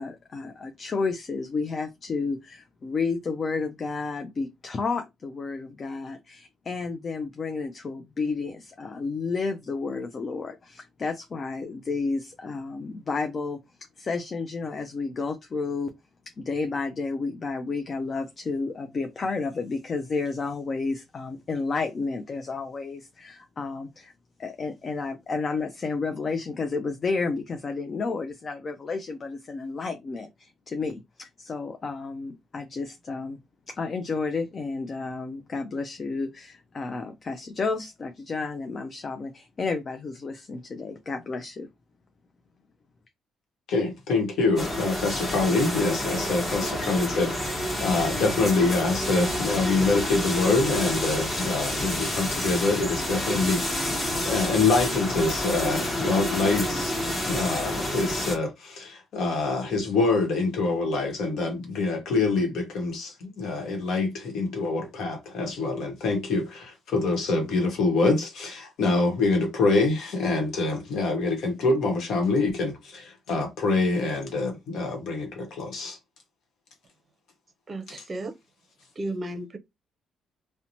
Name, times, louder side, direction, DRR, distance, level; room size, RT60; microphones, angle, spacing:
voice 1, 0.0-13.6 14.0-15.9 16.4-24.1 24.4-33.4 33.7-41.7, left 4 dB, 40° left, 0.4 m, -31 dB
voice 2, 43.7-76.0, left 3 dB, 75° left, 1.0 m, -25 dB
sound 1, 44.6-58.4, left 1 dB, 25° left, 1.2 m, -29 dB
voice 3, 77.7-78.3 79.0-79.6, right 2 dB, 35° right, 0.6 m, -33 dB
2.8 x 2.1 x 2.6 m
cardioid pair, 90°, 0 cm